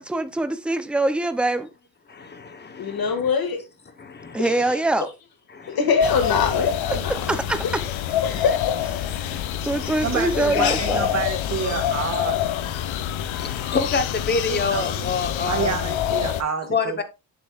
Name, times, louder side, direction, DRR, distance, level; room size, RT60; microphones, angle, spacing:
voice 1, 0.0-1.7 4.3-5.1 6.9-7.0 7.3-7.8 9.2-11.1, right 2 dB, ahead, 0.5 m, -24 dB
voice 2, 2.1-3.3 4.0-4.7 5.5-5.8 9.9-10.0 13.3-15.8 16.7-17.0, left 4 dB, 20° left, 1.0 m, -28 dB
voice 3, 2.8-3.6 4.4-4.6 5.7-7.3 7.6-7.9 8.2-8.7 9.8-9.9 13.7-13.8, left 5 dB, 50° left, 2.0 m, -23 dB
sound 1, 6.0-16.4, left 10 dB, 85° left, 0.9 m, -26 dB
voice 4, 10.0-12.4 14.5-15.0 15.4-17.0, right 6 dB, 35° right, 1.6 m, -28 dB
8.3 x 7.8 x 2.4 m
cardioid pair, 180°, 46 cm